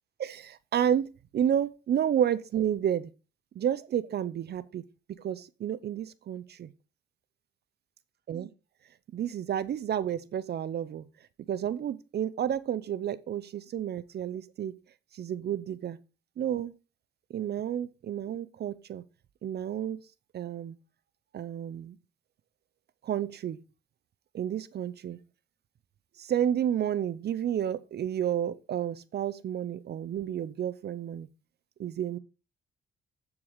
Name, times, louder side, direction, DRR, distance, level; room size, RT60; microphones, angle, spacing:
voice 1, 0.2-3.1 3.6-4.8 5.2-6.7 8.3-8.5 9.1-11.1 11.5-14.8 15.1-16.0 16.4-16.7 17.3-19.0 19.4-20.0 20.3-20.7 21.3-22.0 23.0-23.6 24.3-25.2 26.2-31.3 31.8-32.2, right 9 dB, 55° right, 0.6 m, -31 dB
11.0 x 4.8 x 4.8 m
cardioid pair, 90°, 20 cm